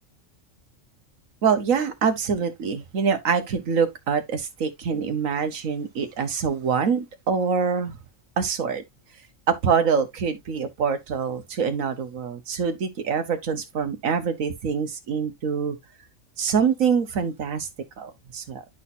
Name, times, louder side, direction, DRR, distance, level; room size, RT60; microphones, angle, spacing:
voice 1, 1.4-8.0 8.4-8.8 9.5-15.8 16.4-17.7 18.0-18.6, right 6 dB, 90° right, 1.6 m, -25 dB
11.5 x 4.3 x 2.6 m
omnidirectional pair, 1.3 m